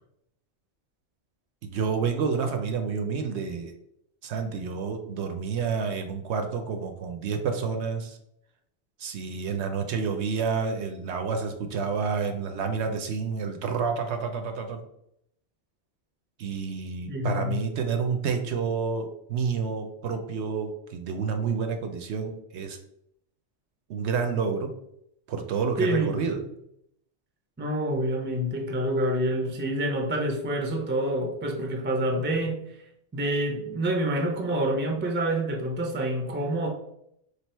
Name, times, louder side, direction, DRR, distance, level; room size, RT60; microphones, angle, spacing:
voice 1, 1.6-3.7 4.2-8.2 9.0-14.8 16.4-22.8 23.9-24.7 25.3-26.4, right 5 dB, 70° right, 5 dB, 0.8 m, -29 dB
voice 2, 17.1-17.6 25.8-26.4 27.6-32.6 33.1-36.7, right 1 dB, 15° right, 1 dB, 0.4 m, -27 dB
3.3 x 2.7 x 4.3 m, 0.76 s
omnidirectional pair, 1.3 m